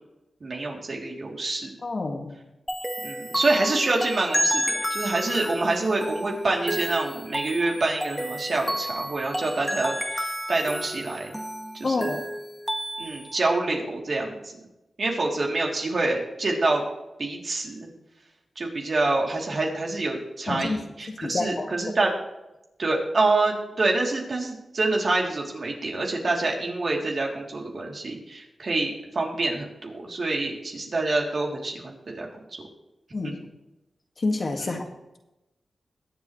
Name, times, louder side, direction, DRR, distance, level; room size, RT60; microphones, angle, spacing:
voice 1, 0.4-1.7 3.0-11.3 11.7-12.1 13.0-14.6 15.0-16.8 17.2-17.9 18.5-22.1 22.8-32.3 34.6-34.8, right 2 dB, 60° right, -1 dB, 3.2 m, -26 dB
voice 2, 1.8-2.4 11.8-12.3 20.5-20.8 21.1-21.7 33.1-33.4 34.2-34.9, left 3 dB, 50° left, 3 dB, 2.0 m, -28 dB
sound 1, 2.7-13.3, equal, 5° right, 1.7 m, -31 dB
21.5 x 8.2 x 3.3 m, 0.97 s
cardioid pair, 60°, 0 cm